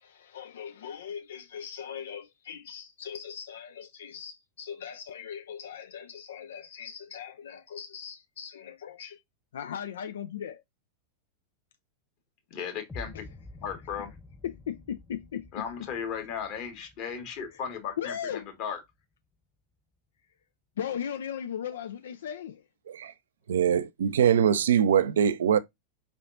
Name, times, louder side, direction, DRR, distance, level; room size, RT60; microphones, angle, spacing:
voice 1, 0.0-9.2 9.5-10.6 14.4-15.7 17.5-17.6 18.0-18.5 20.8-22.6, left 8 dB, 60° left, 0.3 m, -38 dB
voice 2, 12.5-13.3 13.6-14.1 15.5-18.8, left 7 dB, 40° left, 1.4 m, -36 dB
sound 1, 12.9-18.9, left 3 dB, 5° left, 0.5 m, -49 dB
voice 3, 23.5-25.6, right 8 dB, 65° right, 0.4 m, -23 dB
4.6 x 3.3 x 2.5 m
figure-of-eight pair, 90°, 0 cm